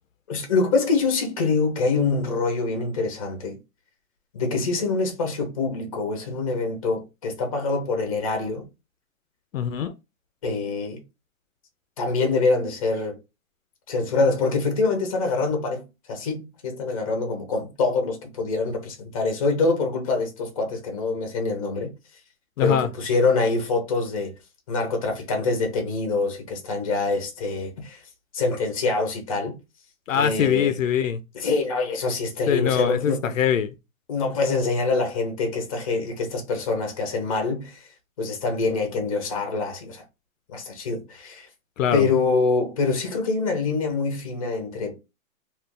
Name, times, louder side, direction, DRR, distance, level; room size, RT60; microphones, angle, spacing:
voice 1, 0.3-3.6 4.3-8.7 10.4-11.0 12.0-13.2 13.9-21.9 22.6-24.3 24.7-28.0 28.3-29.6 30.1-30.8 31.3-33.4 34.1-37.8 38.2-40.0 40.5-41.5 41.9-45.0, left 3 dB, 25° left, 0.7 m, -25 dB
voice 2, 9.5-9.9 22.6-22.9 30.1-31.2 32.5-33.7 41.8-42.1, left 8 dB, 70° left, 0.5 m, -23 dB
2.5 x 2.4 x 3.6 m
hypercardioid pair, 170°, 41 cm